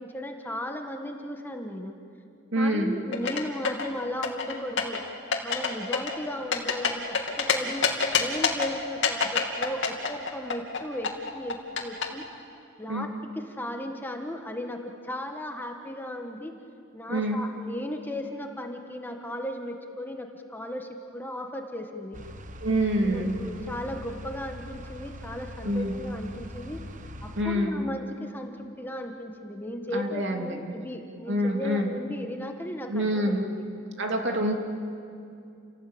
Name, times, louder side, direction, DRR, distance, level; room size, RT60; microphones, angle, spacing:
voice 1, 0.0-1.9 2.5-5.0 5.4-7.8 8.2-12.2 12.8-16.5 16.9-22.2 23.0-26.8 27.2-33.6, left 1 dB, 10° left, 3 dB, 1.5 m, -36 dB
voice 2, 2.5-2.9 12.9-13.1 17.1-17.4 22.6-23.4 25.6-25.9 27.4-27.8 29.9-30.6 31.3-31.9 32.9-33.4 34.0-34.5, equal, 60° right, 2 dB, 2.8 m, -26 dB
sound 1, 3.1-3.9 4.2-5.0 5.3-5.7 5.9-7.5 7.8-8.7 9.0-12.0, left 6 dB, 65° left, 2.7 m, -25 dB
sound 2, 22.1-27.4, equal, 40° right, 1.1 m, -42 dB
29.5 x 17.5 x 8.8 m, 2.5 s
head